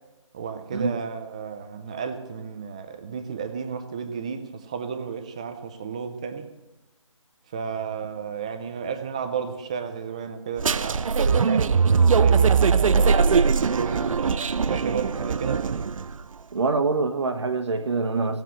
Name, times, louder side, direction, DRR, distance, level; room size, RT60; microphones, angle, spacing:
voice 1, 0.3-6.5 7.5-15.8, right 6 dB, 10° right, 0.4 m, -33 dB
sound 1, 10.6-16.2, right 5 dB, 75° right, 0.5 m, -21 dB
voice 2, 16.5-18.4, right 4 dB, 55° right, 1.3 m, -25 dB
17.0 x 7.6 x 7.8 m
figure-of-eight pair, 165°, 17 cm